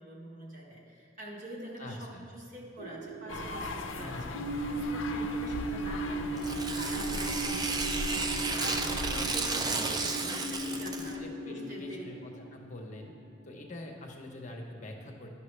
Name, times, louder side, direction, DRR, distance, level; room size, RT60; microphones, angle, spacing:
voice 1, 0.0-4.4 4.7-7.7 8.1-12.1, right 1 dB, 40° right, -2 dB, 1.3 m, -46 dB
voice 2, 1.8-2.3 3.9-4.5 10.0-10.3 10.6-13.1 13.4-15.3, left 1 dB, 40° left, 1 dB, 0.8 m, -45 dB
sound 1, 2.8-13.7, right 2 dB, 85° right, 0.9 m, -37 dB
sound 2, 3.3-9.3, left 3 dB, 75° left, 0.5 m, -38 dB
Tearing, 6.4-11.2, right 3 dB, 20° right, 0.4 m, -33 dB
12.0 x 5.7 x 3.2 m, 2.5 s
head